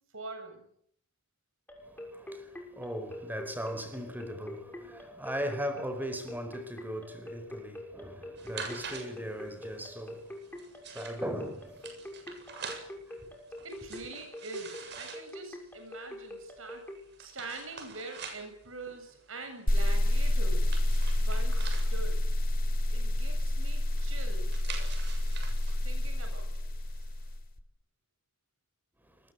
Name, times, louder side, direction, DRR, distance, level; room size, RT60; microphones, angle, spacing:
voice 1, 0.1-0.7 13.6-16.9 17.2-20.7 21.2-22.2 22.9-24.6 25.8-26.7, right 3 dB, 80° right, 7.9 m, -44 dB
sound 1, 1.7-17.0, left 1 dB, 10° left, 6.3 m, -44 dB
voice 2, 1.8-10.3 10.9-11.9 12.5-12.7, equal, 10° right, 4.6 m, -38 dB
sound 2, 8.4-27.3, right 5 dB, 55° right, 7.5 m, -47 dB
sound 3, 19.7-27.5, left 1 dB, 45° left, 2.8 m, -28 dB
28.0 x 22.0 x 8.4 m
head